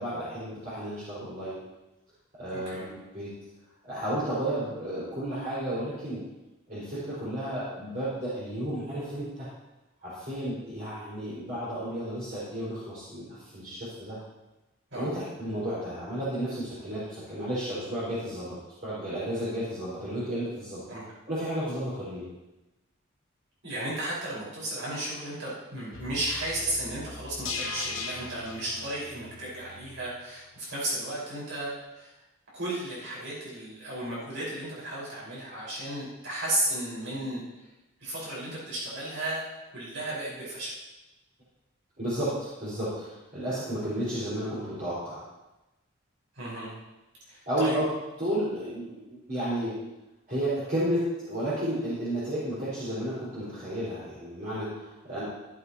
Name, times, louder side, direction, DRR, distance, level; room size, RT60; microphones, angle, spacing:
voice 1, 0.0-1.6 2.3-3.3 3.8-6.2 6.7-9.5 10.0-14.2 14.9-20.8 21.3-22.2 42.0-45.2 47.5-47.9 48.2-49.0 49.3-49.7 50.3-55.2, right 1 dB, 45° right, -11 dB, 5.2 m, -32 dB
voice 2, 23.6-32.1 32.5-37.4 38.0-39.4 39.7-40.7 46.3-46.7 47.3-47.8, right 1 dB, 65° right, -7 dB, 5.0 m, -34 dB
sound 1, 25.9-30.1 30.4-30.5, left 4 dB, 75° left, 2.0 m, -39 dB
15.5 x 12.0 x 3.0 m, 1.0 s
head